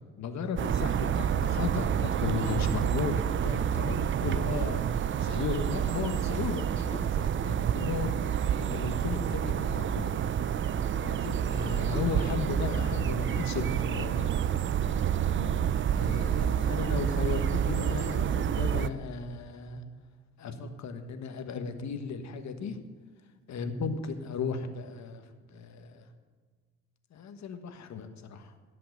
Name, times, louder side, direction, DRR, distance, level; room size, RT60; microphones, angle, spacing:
voice 1, 0.2-8.1 8.6-10.2 10.9-14.4 15.9-19.8 20.4-22.9 23.5-26.1 27.1-28.5, left 5 dB, 65° left, 8 dB, 1.3 m, -35 dB
sound 1, 0.6-18.9, right 9 dB, 40° right, 0.5 m, -28 dB
sound 2, 6.9-16.4, right 1 dB, 10° right, 2.4 m, -49 dB
16.0 x 5.8 x 8.0 m, 1.5 s
cardioid pair, 90°, 30 cm